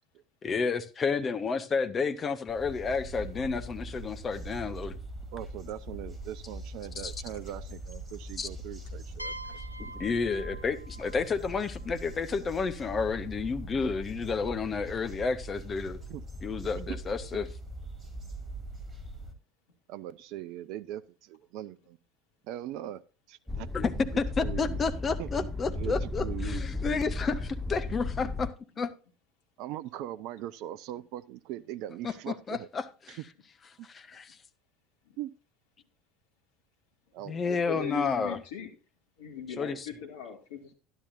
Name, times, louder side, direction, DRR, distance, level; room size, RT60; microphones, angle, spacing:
voice 1, 0.4-5.0 7.0-7.1 8.4-8.5 9.9-16.0 16.4-17.5 23.7-28.5 28.8-28.9 32.0-33.2 33.8-34.4 37.3-38.4 39.6-39.8, left 5 dB, 25° left, 9 dB, 0.8 m, -31 dB
sound 1, 2.5-19.3, right 1 dB, 20° right, 2.1 m, -42 dB
voice 2, 5.3-9.6 16.1-16.2 19.9-22.0 22.5-23.0 23.3-23.7 23.9-24.1 24.4-24.8 25.2-26.6 28.2-28.3 29.6-32.7 33.1-33.2 33.8-33.9 35.2-35.3 37.1-37.6, right 13 dB, 50° right, 15 dB, 0.4 m, -40 dB
sound 2, 9.2-12.8, right 1 dB, 90° left, 0.4 m, -45 dB
sound 3, 23.5-28.5, left 2 dB, 5° right, 0.7 m, -34 dB
voice 3, 37.4-38.7 39.2-40.7, left 8 dB, 65° left, 3 dB, 1.7 m, -40 dB
11.5 x 11.0 x 2.6 m, 0.33 s
figure-of-eight pair, 70°, 0 cm